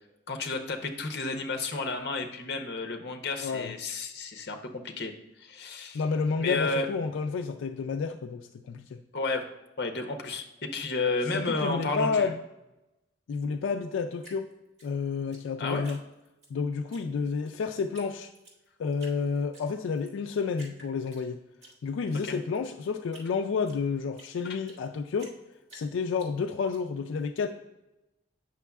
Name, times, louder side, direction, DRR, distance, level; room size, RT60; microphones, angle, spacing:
voice 1, 0.3-5.1 5.4-6.0 6.4-6.9 9.1-9.5 9.8-12.3 15.6-15.9 22.2-22.4, left 3 dB, 55° left, 4 dB, 0.7 m, -32 dB
voice 2, 3.4-3.7 5.9-9.0 11.3-12.4 13.3-14.5 14.8-16.0 16.5-18.3 18.8-21.4 21.8-25.3 25.7-27.5, left 5 dB, 85° left, 5 dB, 0.3 m, -30 dB
Drip, 14.2-16.5 16.9-17.6 17.9-18.1 18.3-19.2 19.5-20.2 20.5-21.7 22.1-24.9 25.2-26.8, right 2 dB, 65° right, 1.9 m, -52 dB
8.2 x 6.1 x 2.3 m, 0.96 s
head